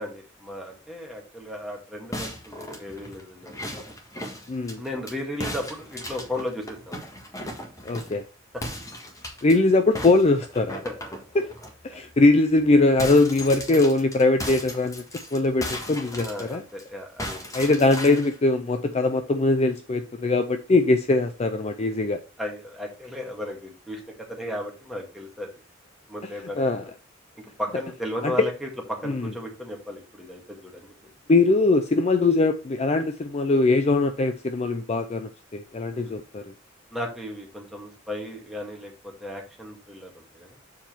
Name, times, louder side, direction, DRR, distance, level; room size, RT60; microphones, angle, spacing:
voice 1, 0.0-3.7 4.8-7.0 8.5-8.6 10.8-11.2 11.9-12.0 16.1-17.5 22.4-25.5 26.1-26.9 27.4-30.9 35.9-36.1 36.9-40.6, left 1 dB, ahead, 2.0 m, -35 dB
window small smash with axe metal grill glass shards debris, 2.1-5.1 5.4-8.2 8.6-9.6 10.0-11.7 12.1-12.3 12.6-16.8 17.2-18.4, left 1 dB, 15° left, 1.6 m, -36 dB
voice 2, 4.5-4.8 7.9-8.2 9.4-10.8 11.4-11.5 11.8-15.0 15.3-16.6 17.5-22.2 26.6-26.8 28.2-28.5 29.0-29.3 31.3-36.4, left 2 dB, 35° left, 0.5 m, -21 dB
7.2 x 4.4 x 4.4 m
head